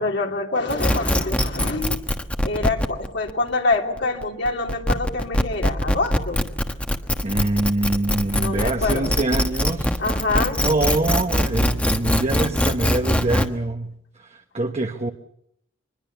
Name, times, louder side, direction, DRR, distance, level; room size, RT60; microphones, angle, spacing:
voice 1, 0.0-2.0 2.4-6.4 8.3-9.1 10.0-10.6, left 3 dB, 65° left, 2 dB, 3.0 m, -25 dB
sound 1, 0.7-13.5, equal, 5° left, 1.2 m, -22 dB
voice 2, 7.2-10.0 10.6-13.9 14.2-15.1, right 2 dB, 35° right, 4 dB, 1.1 m, -24 dB
24.0 x 21.0 x 7.0 m, 0.76 s
head